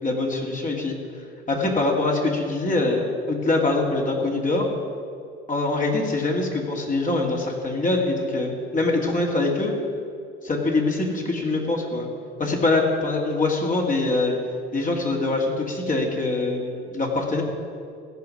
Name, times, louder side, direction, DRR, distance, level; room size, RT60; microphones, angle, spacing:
voice 1, 0.0-1.0 1.5-4.7 5.5-9.7 10.4-12.1 12.4-14.3 14.7-17.4, left 2 dB, 25° left, -1 dB, 2.7 m, -24 dB
15.5 x 7.0 x 9.9 m, 2.4 s
figure-of-eight pair, 60°, 31 cm